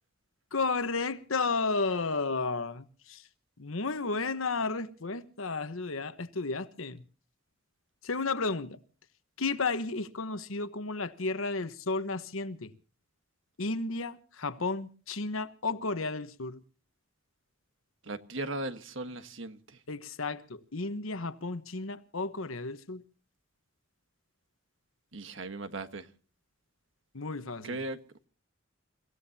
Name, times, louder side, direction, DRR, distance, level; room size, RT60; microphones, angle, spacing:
voice 1, 0.5-3.2 3.6-7.0 8.0-8.8 9.4-12.7 13.6-16.6 19.9-23.0 27.1-27.8, left 3 dB, 80° left, 1.2 m, -33 dB
voice 2, 18.1-19.8 25.1-26.1 27.6-28.0, right 2 dB, 65° right, 1.4 m, -37 dB
29.5 x 16.5 x 2.8 m
head